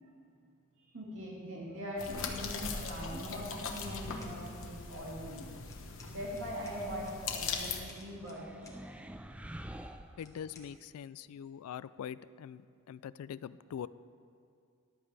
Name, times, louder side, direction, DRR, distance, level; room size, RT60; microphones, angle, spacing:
voice 1, 0.8-5.5 6.1-8.5, equal, 65° right, -3 dB, 1.8 m, -42 dB
sound 1, 2.0-7.8, left 4 dB, 65° left, 1.1 m, -40 dB
sound 2, 2.0-2.5 3.7-4.4 5.7-8.8 10.2-10.7, left 3 dB, 15° left, 1.3 m, -58 dB
sound 3, 7.5-10.8, right 1 dB, 5° right, 0.3 m, -48 dB
voice 2, 10.2-12.6 12.9-13.9, left 8 dB, 85° left, 17 dB, 0.3 m, -43 dB
14.0 x 11.5 x 3.3 m, 2.3 s
head